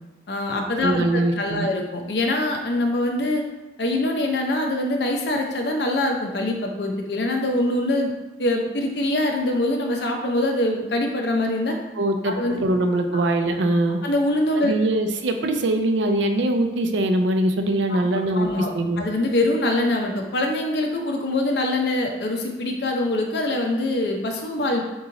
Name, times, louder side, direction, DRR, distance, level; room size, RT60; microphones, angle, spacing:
voice 1, 0.3-3.4 3.8-8.1 8.4-11.8 12.2-12.6 14.0-14.7 17.9-18.0 18.3-24.8, left 1 dB, 60° left, 2 dB, 0.6 m, -24 dB
voice 2, 0.8-1.7 12.0-14.0 14.6-19.0, right 1 dB, 80° right, 5 dB, 0.5 m, -22 dB
3.7 x 3.0 x 3.8 m, 1.1 s
head